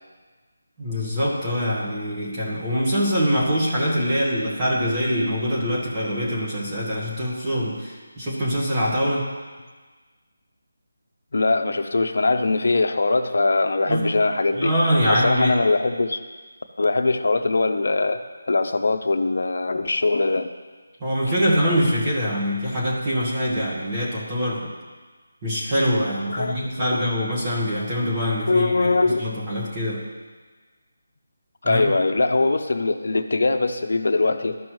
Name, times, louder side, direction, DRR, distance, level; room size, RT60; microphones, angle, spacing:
voice 1, 0.8-9.3 13.9-14.1 14.5-15.6 21.0-24.7 25.4-28.9 29.2-30.0 31.6-31.9, equal, 15° right, -7 dB, 1.4 m, -24 dB
voice 2, 11.3-14.7 15.1-16.2 16.8-18.2 18.5-20.5 26.3-26.9 28.5-29.3 31.6-34.6, left 3 dB, 60° left, 7 dB, 0.6 m, -21 dB
14.0 x 5.3 x 3.1 m, 1.4 s
figure-of-eight pair, 175°, 0 cm